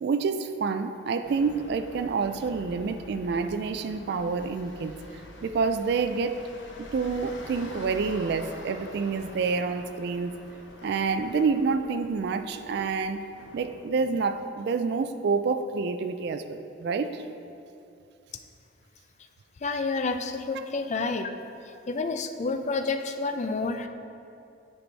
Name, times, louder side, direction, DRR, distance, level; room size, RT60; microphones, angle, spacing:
voice 1, 0.0-4.9 5.4-6.4 6.8-10.3 10.8-13.2 13.5-17.2, right 4 dB, 60° right, 8 dB, 0.3 m, -28 dB
sound 1, 1.2-14.3, left 1 dB, 75° left, 0.9 m, -47 dB
voice 2, 19.6-21.3 21.9-23.9, left 3 dB, 40° left, 7 dB, 0.4 m, -29 dB
9.8 x 4.7 x 4.0 m, 2.6 s
head